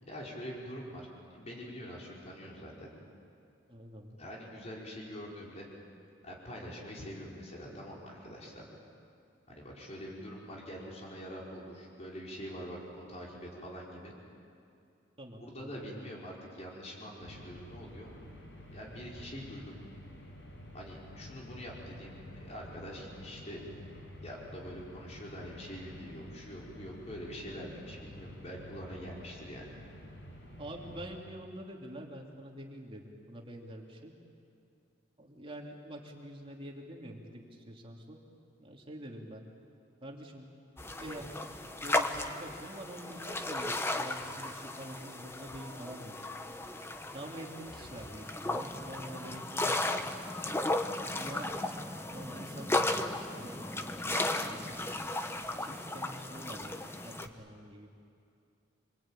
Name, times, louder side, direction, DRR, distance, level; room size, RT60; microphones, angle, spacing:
voice 1, 0.0-2.9 4.2-5.7 6.2-8.8 9.5-14.1 15.4-18.1 18.7-19.8 20.7-23.6 24.2-29.6 50.0-50.4, equal, 35° left, -3 dB, 5.1 m, -44 dB
voice 2, 3.7-4.2 15.2-16.0 30.6-34.1 35.2-38.2 38.6-39.4 40.0-40.5 41.0-41.3 41.8-46.2 47.1-49.7 51.1-51.8 52.1-54.1 54.4-54.8 55.6-56.8 57.0-57.9, right 1 dB, 30° right, -1 dB, 2.8 m, -46 dB
sound 1, 17.2-31.2, left 1 dB, 70° left, 5.2 m, -50 dB
sound 2, 40.8-57.3, left 2 dB, 15° left, 1.0 m, -35 dB
27.0 x 23.5 x 9.0 m, 2.5 s
head